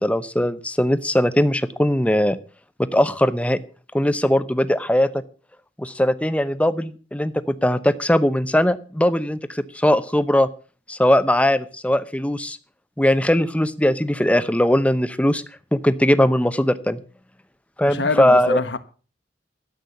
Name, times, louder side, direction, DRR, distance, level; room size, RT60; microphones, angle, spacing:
voice 1, 0.0-2.4 2.9-3.6 3.9-5.1 5.8-10.5 10.9-12.6 13.0-15.4 15.7-17.0 17.8-18.6, left 1 dB, 10° left, 0.8 m, -20 dB
voice 2, 17.8-18.8, left 3 dB, 85° left, 1.3 m, -25 dB
13.0 x 8.2 x 7.0 m
head